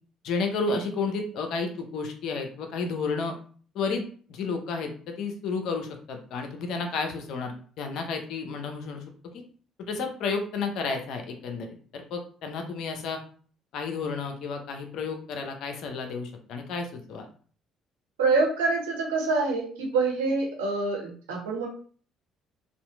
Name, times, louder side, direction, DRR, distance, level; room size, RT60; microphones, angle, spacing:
voice 1, 0.2-3.3 3.7-4.9 5.2-9.4 9.8-13.2 13.7-17.3, left 4 dB, 65° left, 4 dB, 0.6 m, -32 dB
voice 2, 18.2-21.7, right 3 dB, 85° right, -1 dB, 0.8 m, -26 dB
2.7 x 2.5 x 2.3 m, 0.44 s
hypercardioid pair, 55°, 0 cm